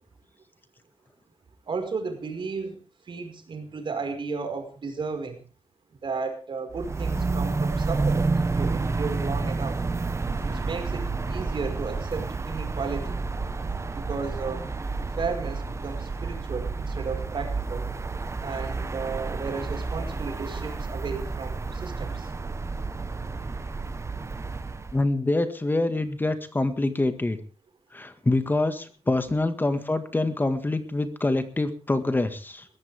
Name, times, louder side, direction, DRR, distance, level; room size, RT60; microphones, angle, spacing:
voice 1, 1.7-5.4 6.0-9.8 10.4-13.2 13.9-14.6 15.2-17.9 18.4-22.3, right 4 dB, 55° right, 6 dB, 5.2 m, -34 dB
sound 1, 6.7-25.0, right 3 dB, 30° right, 1.2 m, -30 dB
voice 2, 24.9-27.4 27.9-32.7, left 2 dB, 20° left, 9 dB, 1.8 m, -25 dB
21.0 x 15.0 x 3.6 m, 0.37 s
wide cardioid pair, 115°, 10 cm